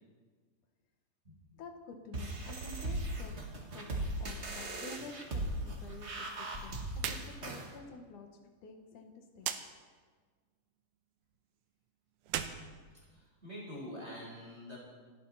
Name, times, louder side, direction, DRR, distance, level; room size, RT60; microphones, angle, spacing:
voice 1, 1.6-3.3 3.7-3.9 4.2-8.3 8.6-9.8, left 3 dB, 60° left, 5 dB, 2.8 m, -50 dB
sound 1, 2.1-7.7, right 1 dB, 40° right, 1.0 m, -38 dB
sound 2, 7.0-7.3 7.6-7.7 9.4-9.6 12.2-13.5, right 10 dB, 75° right, 2.0 m, -38 dB
voice 2, 13.1-14.8, equal, 15° right, -4 dB, 4.3 m, -46 dB
28.5 x 11.0 x 4.2 m, 1.5 s
omnidirectional pair, 4.4 m